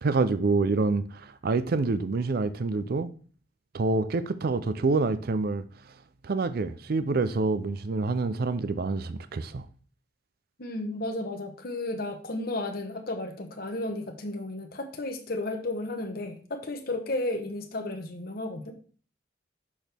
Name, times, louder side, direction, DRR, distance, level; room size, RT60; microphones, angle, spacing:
voice 1, 0.0-3.1 3.7-5.6 6.2-9.7, right 3 dB, 55° right, 0.4 m, -27 dB
voice 2, 10.6-18.7, left 2 dB, 55° left, 1.0 m, -33 dB
6.3 x 6.1 x 3.4 m
head